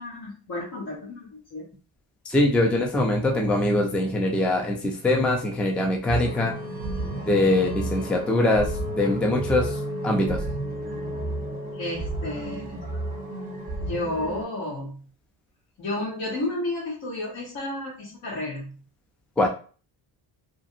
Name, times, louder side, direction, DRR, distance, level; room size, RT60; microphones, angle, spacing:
voice 1, 0.0-1.6 11.7-12.8 13.8-15.0 15.8-18.7, left 1 dB, 50° left, -7 dB, 1.2 m, -32 dB
voice 2, 2.3-6.5 7.3-8.7 9.0-9.7 10.0-10.4 19.4-19.5, left 1 dB, 5° left, 2 dB, 0.3 m, -22 dB
sound 1, 6.1-14.4, right 1 dB, 20° right, 1.0 m, -31 dB
2.8 x 2.5 x 2.6 m, 0.38 s
cardioid pair, 110°, 45 cm